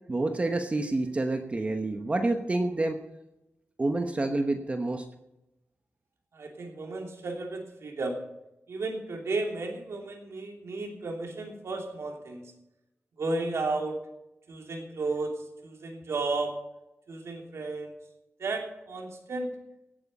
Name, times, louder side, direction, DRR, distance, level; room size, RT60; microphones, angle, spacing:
voice 1, 0.1-3.0 3.8-5.1, right 2 dB, 30° right, 5 dB, 1.0 m, -28 dB
voice 2, 6.3-8.2 8.7-12.5 13.2-13.9 14.5-15.3 15.6-16.6 17.1-17.9 18.4-19.6, right 3 dB, 75° right, 2 dB, 3.0 m, -33 dB
17.5 x 9.0 x 5.4 m, 0.90 s
wide cardioid pair, 150°, 5 cm